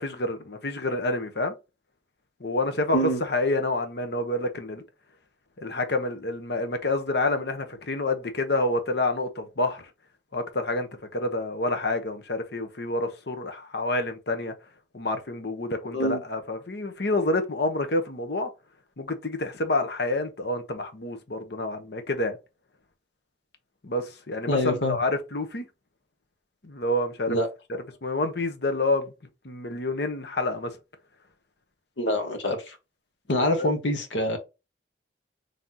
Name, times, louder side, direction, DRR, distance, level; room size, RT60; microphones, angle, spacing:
voice 1, 0.0-1.5 2.4-4.8 5.6-9.9 10.3-14.5 14.9-18.5 19.0-22.4 23.8-25.7 26.6-27.4 28.0-29.1 29.4-30.7 33.6-33.7, left 2 dB, 60° left, 0.9 m, -28 dB
voice 2, 24.5-25.0 27.3-27.5 32.0-32.8 33.3-34.4, equal, 90° left, 1.2 m, -25 dB
3.8 x 3.4 x 2.8 m
head